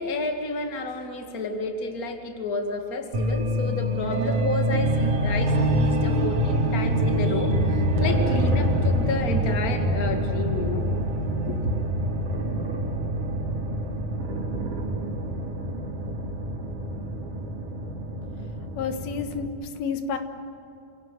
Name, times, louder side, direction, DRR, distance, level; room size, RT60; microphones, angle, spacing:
voice 1, 0.0-10.9 11.5-11.7, left 3 dB, 30° left, 4 dB, 2.1 m, -30 dB
sound 1, 3.1-19.5, right 1 dB, 60° right, 3.7 m, -26 dB
voice 2, 18.8-20.2, left 6 dB, 85° left, 7 dB, 3.3 m, -30 dB
28.0 x 17.5 x 9.0 m, 2.9 s
omnidirectional pair, 4.2 m